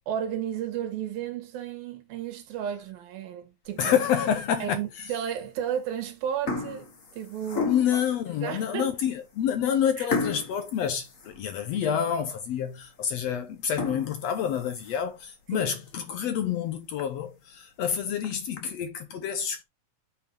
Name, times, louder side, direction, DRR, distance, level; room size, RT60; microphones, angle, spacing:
voice 1, 0.1-4.0 4.6-8.0 8.4-9.0 10.0-10.1 15.5-15.7, right 9 dB, 90° right, 3.3 m, -33 dB
sound 1, 3.7-4.2 4.8-4.9 5.7-6.0 6.2-8.1 8.7-8.8 9.2-9.3 10.1-11.9 12.3-12.4 12.9-13.0 13.6-15.2 15.7-15.8 16.2-16.3 16.6-16.7 17.0-17.1 18.0-18.6, left 3 dB, 40° left, 1.1 m, -34 dB
voice 2, 3.8-5.1 7.7-19.6, left 8 dB, 75° left, 1.5 m, -28 dB
7.4 x 5.6 x 4.8 m
omnidirectional pair, 4.1 m